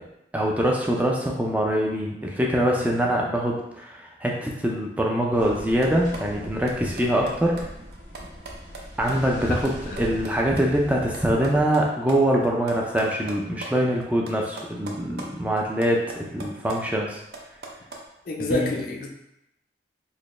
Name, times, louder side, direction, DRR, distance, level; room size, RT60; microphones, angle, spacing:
voice 1, 0.3-7.7 9.0-9.7 10.0-17.2 18.5-18.7, right 1 dB, 10° right, -2 dB, 0.3 m, -24 dB
sound 1, 5.3-11.6, equal, 80° right, 1.1 m, -40 dB
sound 2, 5.5-10.6 10.9-13.7 14.0-15.3 15.6-18.0, right 2 dB, 60° right, 0.5 m, -40 dB
voice 2, 18.3-19.1, left 2 dB, 50° left, 2 dB, 0.5 m, -28 dB
4.1 x 2.1 x 3.1 m, 0.84 s
head